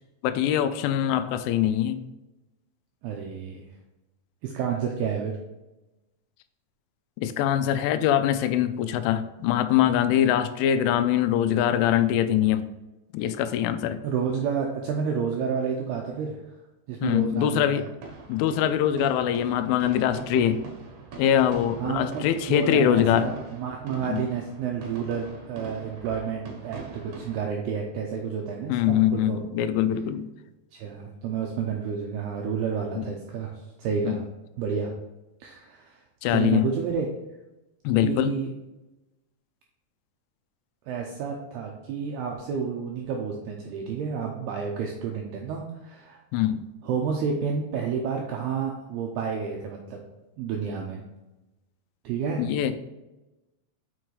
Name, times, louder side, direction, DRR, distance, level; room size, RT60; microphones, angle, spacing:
voice 1, 0.2-2.0 7.2-12.7 13.1-14.0 17.0-17.8 18.3-20.6 21.2-23.3 24.0-24.2 28.7-30.3 33.0-33.1 34.0-34.2 36.2-36.7 37.8-38.3 46.3-46.7 52.4-52.7, left 10 dB, 90° left, 10 dB, 3.1 m, -23 dB
voice 2, 3.0-3.6 4.4-5.4 14.0-16.4 16.9-17.9 21.8-29.4 30.7-34.2 34.6-34.9 35.4-36.0 36.3-37.1 38.0-38.5 40.9-46.2 46.8-50.0 50.4-51.0 52.0-52.7, right 6 dB, 90° right, 1 dB, 2.3 m, -30 dB
sound 1, 17.9-27.5, right 5 dB, 70° right, 2.2 m, -42 dB
7.1 x 6.0 x 3.2 m, 1.0 s
omnidirectional pair, 5.5 m